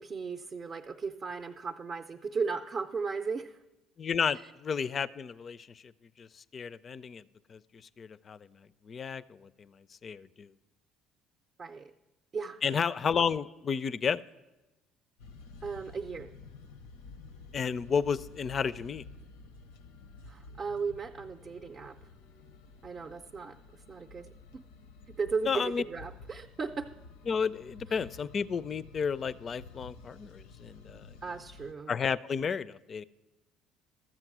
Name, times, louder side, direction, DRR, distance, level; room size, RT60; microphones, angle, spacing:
voice 1, 0.0-3.6 4.3-4.5 11.6-11.9 12.3-12.8 15.6-16.3 20.3-22.1 22.8-24.6 25.1-26.9 27.9-28.0 31.2-31.9, right 5 dB, 40° right, 6 dB, 0.5 m, -36 dB
voice 2, 4.0-5.7 6.2-6.3 6.5-7.2 7.5-7.6 8.0-8.4 8.9-9.7 10.0-10.5 12.6-14.2 17.5-19.0 25.5-25.8 27.3-31.1 31.9-33.1, left 6 dB, 45° left, 18 dB, 0.4 m, -32 dB
sound 1, 15.2-31.7, left 4 dB, 90° left, 0.6 m, -51 dB
13.0 x 7.5 x 6.0 m, 1.0 s
hypercardioid pair, 70°, 0 cm